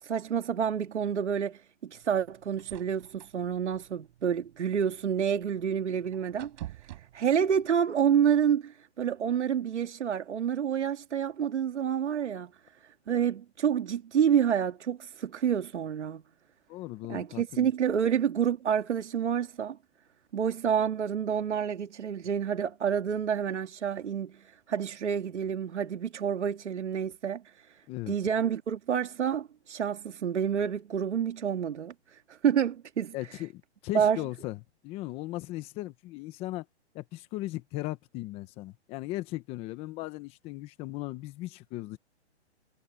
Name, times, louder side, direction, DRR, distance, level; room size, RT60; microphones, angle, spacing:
voice 1, 0.0-6.5 6.8-12.5 13.1-16.2 17.1-19.8 20.3-33.4 33.9-34.2, right 8 dB, 85° right, 2.7 m, -28 dB
sound 1, 1.9-7.7, right 15 dB, 40° right, 5.8 m, -49 dB
voice 2, 16.7-17.7 27.9-28.1 33.1-34.6 34.8-36.7 36.9-42.0, left 17 dB, 15° left, 1.1 m, -37 dB
hypercardioid pair, 165°, 34 cm